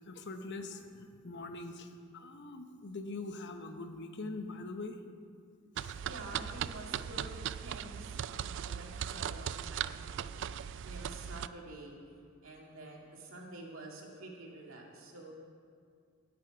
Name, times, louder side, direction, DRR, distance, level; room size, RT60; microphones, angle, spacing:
voice 1, 0.1-5.0 5.8-6.0, left 3 dB, 60° left, 6 dB, 1.0 m, -43 dB
sound 1, 5.8-11.5, right 9 dB, 60° right, 0.3 m, -39 dB
voice 2, 6.0-10.5 10.8-12.0 12.4-15.3, right 2 dB, 80° right, -1 dB, 2.4 m, -48 dB
19.0 x 7.4 x 4.9 m, 2.2 s
head